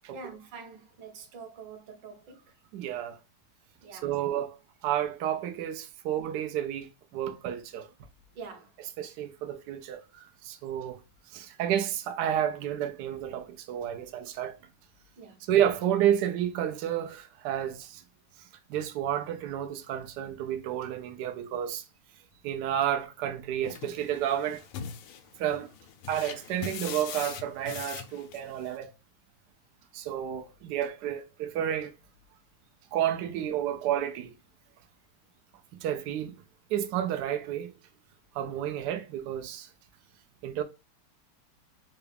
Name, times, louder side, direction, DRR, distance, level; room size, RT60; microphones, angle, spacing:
voice 1, 0.1-2.5 3.8-4.2 8.3-8.7 15.2-15.5 34.7-34.8 38.4-38.6, right 5 dB, 65° right, 1.4 m, -46 dB
voice 2, 2.7-3.2 4.0-4.6 4.8-7.9 9.0-11.0 11.3-14.6 15.5-18.0 18.7-21.8 22.4-24.6 25.4-25.7 26.1-28.9 29.9-31.9 32.9-34.3 35.8-36.3 36.7-37.7 38.3-39.7 40.4-40.6, right 10 dB, 85° right, 0.9 m, -30 dB
sound 1, 23.6-28.7, left 8 dB, 80° left, 1.5 m, -41 dB
3.9 x 2.3 x 3.2 m
omnidirectional pair, 2.4 m